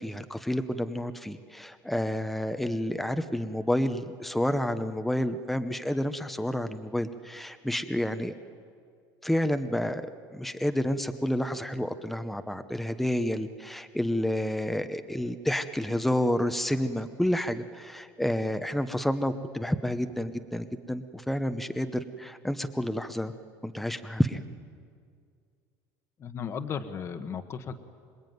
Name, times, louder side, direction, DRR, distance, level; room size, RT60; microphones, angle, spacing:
voice 1, 0.0-8.4 9.2-23.3 23.6-24.4, left 1 dB, ahead, 9 dB, 0.8 m, -29 dB
voice 2, 26.2-27.9, left 6 dB, 35° left, 9 dB, 1.3 m, -35 dB
26.0 x 21.5 x 9.4 m, 2.2 s
cardioid pair, 145°, 8 cm